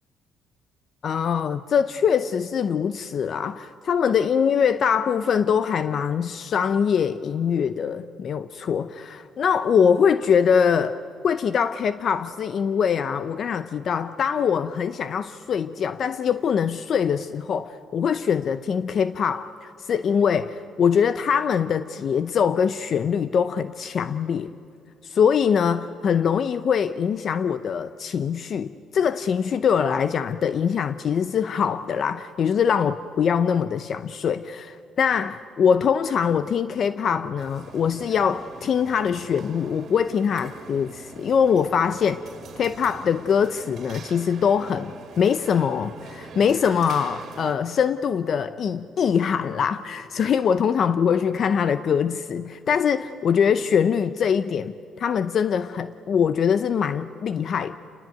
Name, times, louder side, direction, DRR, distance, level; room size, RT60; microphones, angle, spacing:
voice 1, 1.0-11.0 11.2-24.5 25.0-42.2 42.6-44.9 45.2-57.8, left 7 dB, 50° left, 13 dB, 0.7 m, -23 dB
sound 1, 37.4-47.6, right 5 dB, 55° right, 2.6 m, -44 dB
28.5 x 20.0 x 9.1 m, 2.6 s
cardioid pair, 125°, 0 cm